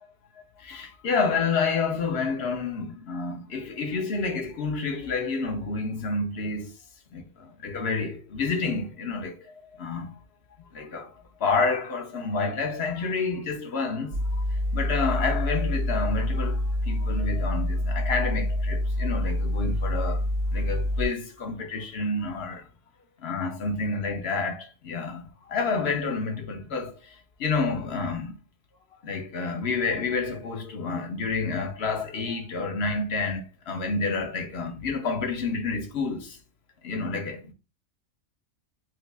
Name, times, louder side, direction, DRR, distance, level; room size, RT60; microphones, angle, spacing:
voice 1, 0.6-6.7 7.1-10.1 10.7-11.1 11.4-14.2 14.7-20.2 20.5-22.7 23.2-25.2 25.5-26.9 27.4-28.3 29.0-36.4 36.8-37.5, left 4 dB, 60° left, 0.8 m, -29 dB
sound 1, 14.1-21.1, left 1 dB, 85° right, 1.2 m, -27 dB
4.6 x 2.3 x 2.3 m
omnidirectional pair, 1.3 m